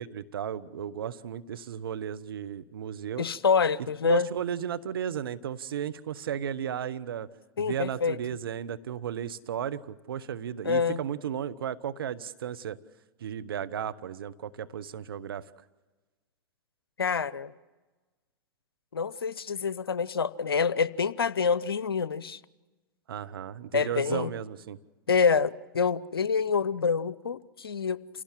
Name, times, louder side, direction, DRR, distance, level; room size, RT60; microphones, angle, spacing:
voice 1, 0.0-3.3 4.0-7.3 7.6-12.8 13.2-15.5 23.1-24.8, right 9 dB, 75° right, 12 dB, 1.1 m, -34 dB
voice 2, 3.2-4.3 7.6-8.2 10.6-11.0 17.0-17.5 18.9-22.4 23.7-24.3 25.1-28.0, left 5 dB, 85° left, 18 dB, 0.8 m, -26 dB
28.0 x 17.5 x 7.5 m, 1.2 s
hypercardioid pair, 105°, 12 cm